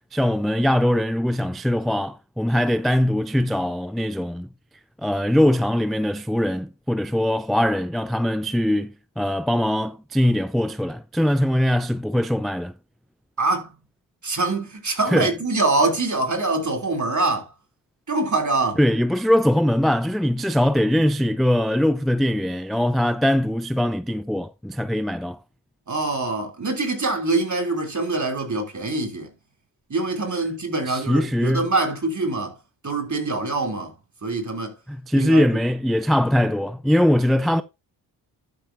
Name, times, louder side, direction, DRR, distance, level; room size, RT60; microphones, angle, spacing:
voice 1, 0.1-4.5 5.0-12.7 15.1-15.3 18.8-25.4 30.9-31.7 34.9-37.6, left 1 dB, ahead, 0.4 m, -21 dB
voice 2, 13.4-13.7 14.2-17.5 18.1-18.8 25.9-29.3 29.9-32.6 32.8-33.9 34.2-34.7 35.1-35.4, right 3 dB, 40° right, 3.2 m, -24 dB
12.0 x 6.8 x 2.7 m
supercardioid pair, 45°, 45 cm